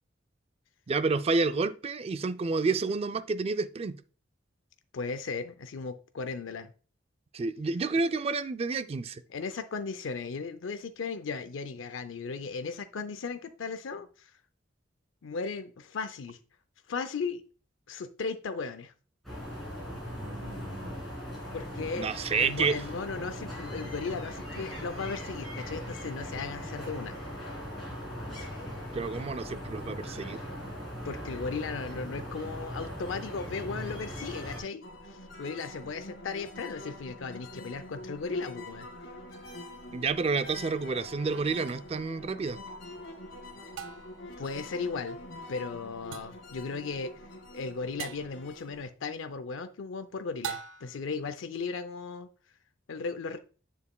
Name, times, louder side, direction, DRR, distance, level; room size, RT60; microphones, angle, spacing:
voice 1, 0.9-4.0 7.3-9.2 20.1-21.0 22.0-22.8 28.9-30.4 39.9-42.6, right 4 dB, 30° right, 0.3 m, -30 dB
voice 2, 4.9-6.7 9.3-14.3 15.2-16.4 16.9-17.4 17.9-18.9 21.5-22.1 22.4-27.2 31.0-38.9 44.4-45.2 45.5-47.1 47.5-52.3 52.9-53.4, left 4 dB, 90° left, 0.5 m, -36 dB
sound 1, 19.2-34.6, equal, ahead, 3.4 m, -39 dB
sound 2, 34.8-48.8, left 1 dB, 70° left, 2.1 m, -45 dB
sound 3, 41.7-41.8 43.8-44.3 46.1-46.5 48.0-48.4 50.4-51.1, right 8 dB, 85° right, 0.5 m, -40 dB
7.2 x 6.8 x 2.3 m
head